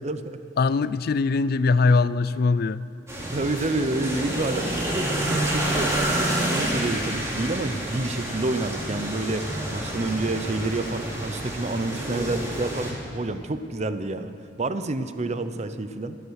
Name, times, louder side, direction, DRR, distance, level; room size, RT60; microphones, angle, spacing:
voice 1, 0.0-0.4 3.3-14.3 14.6-16.2, right 2 dB, 40° right, 11 dB, 0.6 m, -29 dB
voice 2, 0.6-2.8, left 4 dB, 55° left, 16 dB, 0.4 m, -21 dB
sound 1, 3.1-12.9, right 1 dB, 15° right, 2.9 m, -28 dB
23.5 x 8.3 x 6.4 m, 2.5 s
head